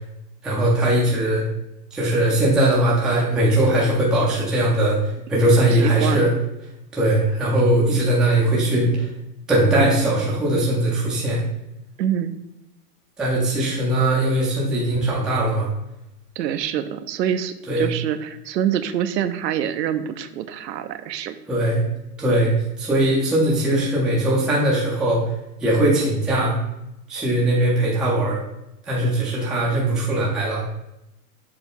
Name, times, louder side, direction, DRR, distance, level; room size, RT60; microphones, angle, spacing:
voice 1, 0.4-1.4 1.9-6.3 6.9-9.1 9.5-11.4 13.2-15.7 17.7-17.9 21.5-21.8 22.2-25.3 25.6-26.6 27.1-28.4 28.8-30.6, right 1 dB, ahead, -5 dB, 0.5 m, -20 dB
voice 2, 5.8-6.2 12.0-12.4 16.4-21.4, right 9 dB, 80° right, 10 dB, 0.8 m, -25 dB
6.8 x 3.6 x 5.4 m, 0.88 s
supercardioid pair, 155°, 49 cm